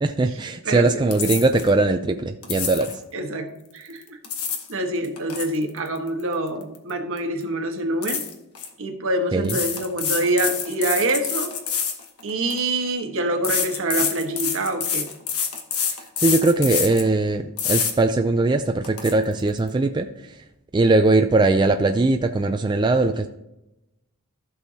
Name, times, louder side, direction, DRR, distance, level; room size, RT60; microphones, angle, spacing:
voice 1, 0.0-3.0 9.3-9.5 16.2-20.1 20.7-23.3, right 2 dB, 20° right, 6 dB, 0.4 m, -20 dB
voice 2, 0.6-1.0 3.1-3.5 3.7-4.2 4.7-8.2 8.8-11.5 12.2-15.1, right 1 dB, 65° right, 4 dB, 1.3 m, -25 dB
sound 1, 1.1-1.7 2.4-3.0 4.0-4.7 5.0-6.9 7.2-7.4 8.0-8.7 9.4-12.6 13.4-17.1 17.6-17.9 18.4-18.5 18.8-19.1, left 7 dB, 75° left, 1.3 m, -27 dB
15.0 x 6.3 x 2.8 m, 0.90 s
head